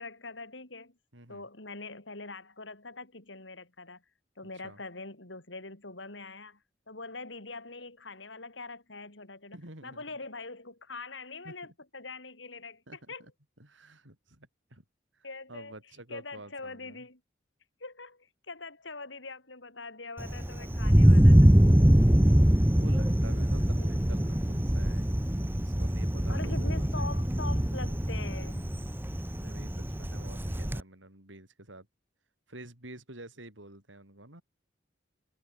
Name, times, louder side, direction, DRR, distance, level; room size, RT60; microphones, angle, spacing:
voice 1, 0.0-0.9 1.3-4.0 4.4-6.6 6.9-9.6 9.8-13.2 15.2-15.8 16.1-17.2 17.8-21.5 23.6-24.2 26.3-28.7, left 3 dB, 80° left, 5.6 m, -43 dB
voice 2, 1.1-1.5 4.6-4.8 9.5-10.2 11.4-11.6 12.9-13.3 13.6-14.8 15.1-17.1 22.1-25.1 25.5-27.2 28.9-31.9 32.5-34.4, right 1 dB, 90° right, 7.4 m, -49 dB
Thunder, 20.2-30.8, equal, 10° right, 1.0 m, -23 dB
head